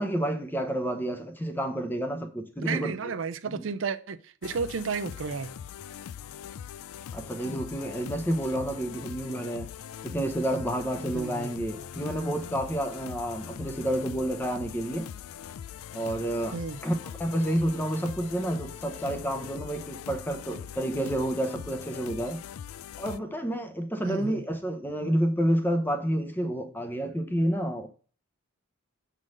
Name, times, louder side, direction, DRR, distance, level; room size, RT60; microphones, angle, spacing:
voice 1, 0.0-3.1 3.5-3.6 7.1-9.7 10.0-15.1 15.9-22.4 23.0-27.9, right 1 dB, 10° left, 0.8 m, -29 dB
voice 2, 2.6-5.5 11.1-11.5 16.5-16.8 24.0-24.4, right 5 dB, 65° right, 0.5 m, -32 dB
sound 1, 4.4-23.2, left 9 dB, 85° left, 0.3 m, -42 dB
7.7 x 3.8 x 6.4 m
head